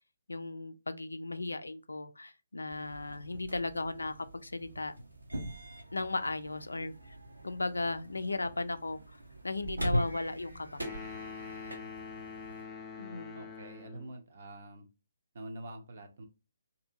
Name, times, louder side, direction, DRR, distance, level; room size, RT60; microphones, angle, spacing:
voice 1, 0.3-4.9 5.9-6.9 7.4-9.0 9.4-10.8 13.0-13.4, left 2 dB, 75° left, 0.3 m, -36 dB
sound 1, 2.7-12.7, right 1 dB, 85° right, 0.8 m, -41 dB
sound 2, 10.8-14.2, left 5 dB, 10° left, 0.5 m, -44 dB
voice 2, 13.4-14.9 15.3-16.3, right 1 dB, 50° right, 0.6 m, -46 dB
2.7 x 2.7 x 2.5 m
figure-of-eight pair, 135°, 0 cm